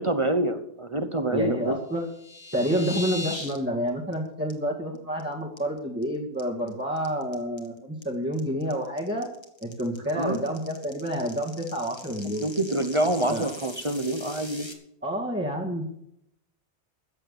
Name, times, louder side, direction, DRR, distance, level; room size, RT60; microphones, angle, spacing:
voice 1, 0.0-1.8 10.1-10.4 12.2-14.7, right 1 dB, 30° right, 9 dB, 1.1 m, -26 dB
voice 2, 1.3-2.1 2.5-9.3 9.6-12.5 13.3-13.5 15.0-15.8, equal, 10° right, -3 dB, 2.2 m, -29 dB
sound 1, 1.9-3.6 3.9-4.1 4.5-4.6 5.0-5.2 5.6-6.0 6.4-14.7, left 2 dB, 25° left, 2.0 m, -40 dB
14.5 x 8.8 x 7.0 m, 0.77 s
omnidirectional pair, 1.1 m